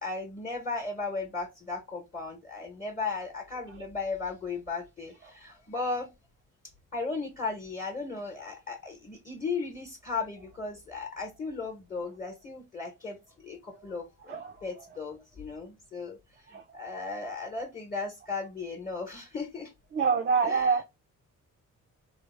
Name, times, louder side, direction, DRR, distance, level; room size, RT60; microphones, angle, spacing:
voice 1, 0.0-6.1 6.9-16.2 16.5-19.7 20.4-20.7, left 4 dB, 25° left, 0.9 m, -36 dB
voice 2, 19.9-20.8, right 5 dB, 35° right, 0.4 m, -26 dB
3.3 x 2.0 x 3.1 m
cardioid pair, 85°, 32 cm